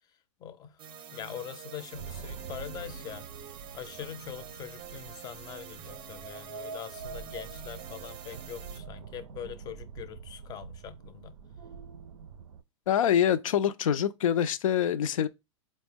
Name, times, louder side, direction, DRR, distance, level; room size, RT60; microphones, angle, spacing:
voice 1, 0.4-0.8 1.1-3.3 3.7-11.4, left 9 dB, 25° left, 0.5 m, -43 dB
sound 1, 0.8-8.8, right 8 dB, 30° right, 0.5 m, -47 dB
sound 2, 1.9-12.6, right 5 dB, 90° right, 0.4 m, -45 dB
voice 2, 12.9-15.3, left 9 dB, 85° left, 0.4 m, -25 dB
4.3 x 2.0 x 3.4 m
hypercardioid pair, 125°, 17 cm